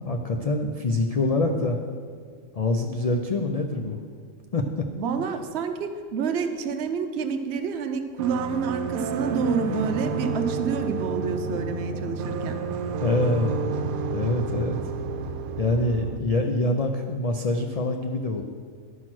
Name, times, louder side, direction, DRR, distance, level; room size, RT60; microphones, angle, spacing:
voice 1, 0.0-1.8 2.5-4.0 4.5-4.6 13.0-13.7 14.1-14.8 15.6-18.4, left 2 dB, 70° left, 3 dB, 0.3 m, -25 dB
voice 2, 5.0-12.6, right 5 dB, 55° right, 6 dB, 0.9 m, -28 dB
sound 1, 8.2-16.2, right 4 dB, 90° right, 1.1 m, -30 dB
11.0 x 6.2 x 6.0 m, 2.1 s
omnidirectional pair, 1.5 m